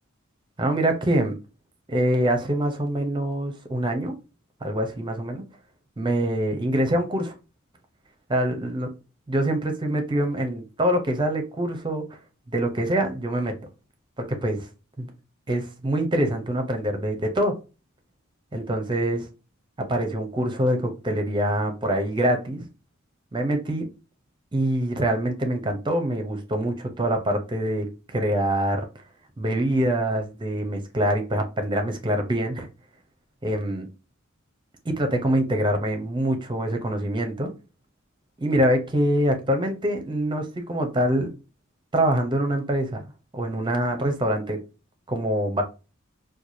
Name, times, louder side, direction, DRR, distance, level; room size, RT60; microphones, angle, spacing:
voice 1, 0.6-1.4 1.9-4.2 4.6-5.4 6.0-7.3 8.3-8.9 9.3-12.1 12.5-13.5 14.2-14.7 15.0-15.1 15.5-17.5 18.5-19.3 19.9-22.7 23.3-23.9 24.5-28.8 29.4-32.7 33.4-33.9 34.8-37.5 38.4-41.3 41.9-44.6 45.1-45.6, right 1 dB, 25° right, 0.7 m, -25 dB
4.6 x 2.3 x 2.6 m
head